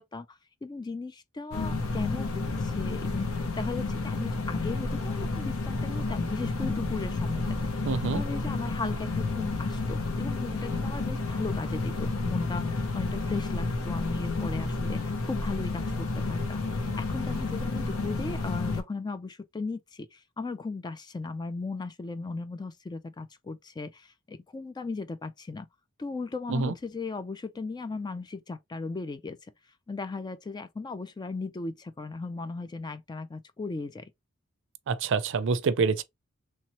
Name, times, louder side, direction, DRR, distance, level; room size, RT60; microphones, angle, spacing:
voice 1, 0.0-7.6 8.1-16.6 17.0-25.7 26.0-29.4 29.9-34.1, left 3 dB, 20° left, 0.3 m, -37 dB
sound 1, 1.5-18.8, left 3 dB, 75° left, 0.8 m, -31 dB
voice 2, 7.9-8.2 26.5-26.7 34.9-36.0, right 4 dB, 60° right, 0.5 m, -26 dB
3.2 x 2.9 x 2.9 m
head